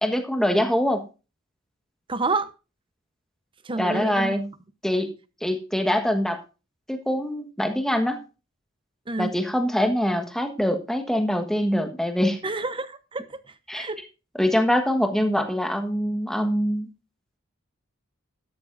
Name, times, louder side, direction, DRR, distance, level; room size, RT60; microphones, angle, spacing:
voice 1, 0.0-1.1 3.8-4.5 4.8-5.1 5.4-6.4 6.9-8.2 9.2-12.4 13.7-13.9 14.4-16.9, equal, ahead, 1.5 m, -24 dB
voice 2, 2.1-2.5 3.6-4.3 9.1-9.3 12.4-13.4 13.7-14.0, right 3 dB, 25° right, 0.9 m, -28 dB
12.5 x 12.0 x 2.6 m
head